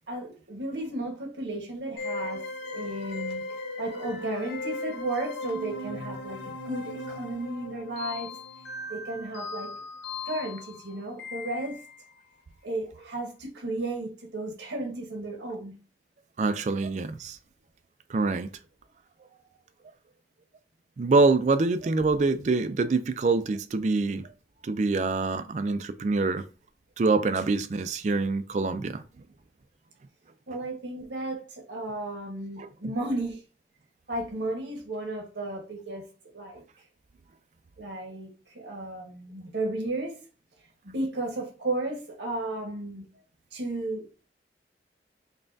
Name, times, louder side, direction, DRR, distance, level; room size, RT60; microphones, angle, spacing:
voice 1, 0.1-2.4 2.7-3.4 3.8-8.3 8.9-9.7 10.3-11.8 12.6-15.7 30.5-33.4 34.1-36.1 36.3-36.6 37.8-40.2 40.8-43.0 43.5-44.1, right 2 dB, 85° right, 1.2 m, -34 dB
sound 1, 2.0-12.1, left 2 dB, 85° left, 0.6 m, -37 dB
voice 2, 16.4-17.4 18.1-18.5 21.0-24.3 24.6-26.4 27.0-29.0 32.6-32.9, right 3 dB, 40° right, 0.3 m, -25 dB
5.4 x 2.3 x 2.6 m
head